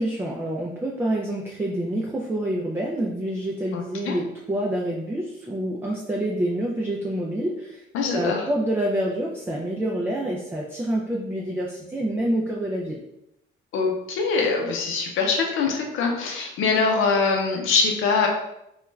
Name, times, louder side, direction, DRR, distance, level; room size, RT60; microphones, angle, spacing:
voice 1, 0.0-7.8 8.1-13.0, right 1 dB, 10° right, -3 dB, 0.4 m, -27 dB
voice 2, 3.7-4.2 7.9-8.5 13.7-18.3, left 4 dB, 85° left, 2 dB, 0.6 m, -23 dB
2.3 x 2.1 x 3.1 m, 0.83 s
cardioid pair, 90°, 20 cm